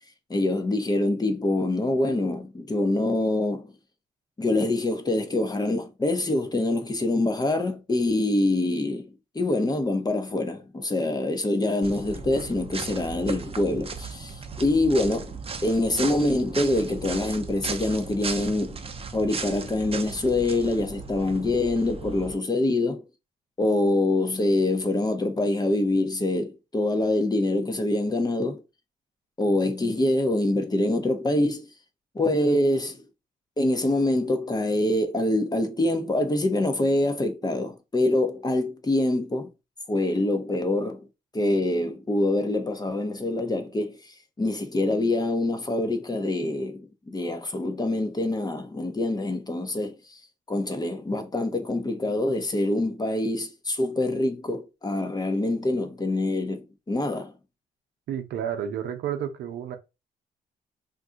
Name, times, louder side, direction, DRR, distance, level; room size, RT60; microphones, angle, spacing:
voice 1, 0.3-3.7 4.4-15.4 15.6-18.9 19.1-23.0 23.6-28.6 29.4-31.7 32.1-33.0 33.6-39.5 39.9-41.1 41.3-50.2 50.5-57.3, left 2 dB, 25° left, 0.7 m, -25 dB
sound 1, 11.8-22.3, right 5 dB, 35° right, 0.6 m, -36 dB
voice 2, 58.1-59.8, right 9 dB, 80° right, 0.6 m, -31 dB
2.6 x 2.3 x 3.8 m
supercardioid pair, 65°, 17 cm